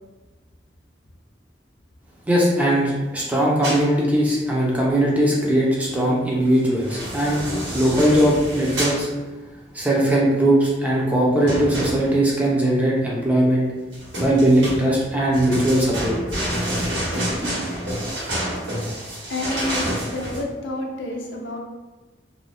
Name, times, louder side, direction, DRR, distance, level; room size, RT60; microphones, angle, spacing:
voice 1, 2.3-7.4 7.7-9.1 9.7-13.7 14.2-16.2, right 1 dB, 10° right, -4 dB, 0.5 m, -19 dB
sound 1, 3.6-3.9 6.6-9.0 11.5-12.4 13.9-20.4, equal, 85° right, 1.2 m, -28 dB
voice 2, 18.6-21.6, left 2 dB, 90° left, 0 dB, 0.5 m, -30 dB
2.6 x 2.2 x 3.3 m, 1.2 s
head